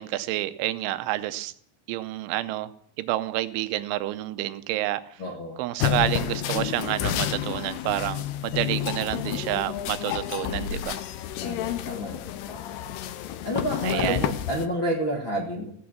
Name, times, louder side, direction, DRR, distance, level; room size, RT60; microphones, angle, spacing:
voice 1, 0.0-1.5 1.9-2.7 3.0-5.2 5.6-11.0 13.8-14.3, right 15 dB, 90° right, 12 dB, 3.2 m, -29 dB
voice 2, 5.2-5.6 11.4-12.9 13.4-15.7, equal, 60° left, 0 dB, 1.2 m, -30 dB
sound 1, 5.8-14.7, left 11 dB, 75° left, 2.6 m, -30 dB
15.5 x 8.6 x 7.3 m, 0.67 s
omnidirectional pair, 5.4 m